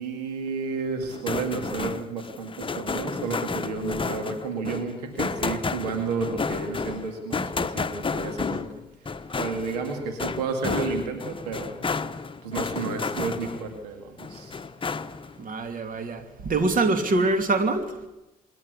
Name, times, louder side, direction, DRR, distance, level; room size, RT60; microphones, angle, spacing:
voice 1, 0.0-8.7 9.0-12.1 12.4-14.5, right 4 dB, 80° right, 4 dB, 2.2 m, -31 dB
sound 1, 1.0-13.8 14.2-15.4, left 4 dB, 25° left, 1.0 m, -32 dB
voice 2, 15.4-18.0, right 3 dB, 45° right, 7 dB, 2.8 m, -24 dB
25.5 x 11.0 x 9.7 m, 0.96 s
hypercardioid pair, 50°, 20 cm